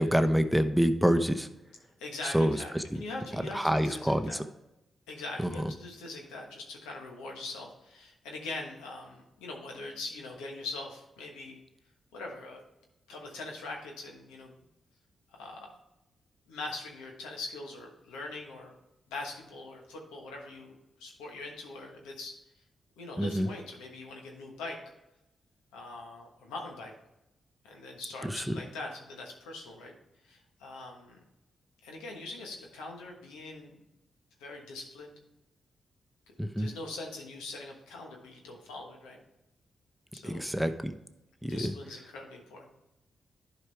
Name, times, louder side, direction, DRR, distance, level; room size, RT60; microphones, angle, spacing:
voice 1, 0.0-1.5 2.2-2.8 3.4-4.4 5.4-5.7 23.2-23.5 28.2-28.5 36.4-36.7 40.2-40.9 41.4-41.7, equal, ahead, 8 dB, 0.8 m, -27 dB
voice 2, 2.0-4.4 5.1-11.6 12.1-12.6 13.1-14.5 15.3-15.8 16.5-18.7 19.1-22.4 23.0-24.8 25.7-26.9 27.6-29.9 30.2-31.2 31.8-33.8 34.4-35.1 36.6-39.2 40.1-40.5 41.5-42.7, left 2 dB, 90° left, 1 dB, 1.3 m, -42 dB
11.0 x 4.9 x 3.4 m, 0.91 s
hypercardioid pair, 40°, 0 cm